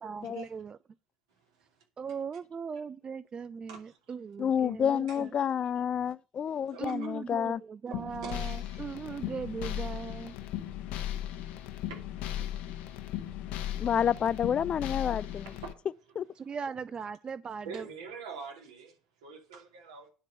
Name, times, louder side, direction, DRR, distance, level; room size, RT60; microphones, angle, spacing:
voice 1, 0.0-0.8 2.0-5.3 6.8-10.4 15.0-15.2 16.4-17.8, right 6 dB, 35° right, 0.5 m, -39 dB
voice 2, 4.4-7.6 13.8-15.5 16.2-16.3, left 8 dB, 40° left, 0.4 m, -29 dB
voice 3, 6.7-7.1 7.9-8.8 11.9-12.0 12.4-12.5 15.3-15.7 17.6-18.9 19.2-20.1, right 5 dB, 70° right, 2.7 m, -45 dB
sound 1, 7.9-15.7, left 12 dB, 60° left, 1.1 m, -37 dB
10.0 x 5.2 x 7.6 m
figure-of-eight pair, 55°, 3 cm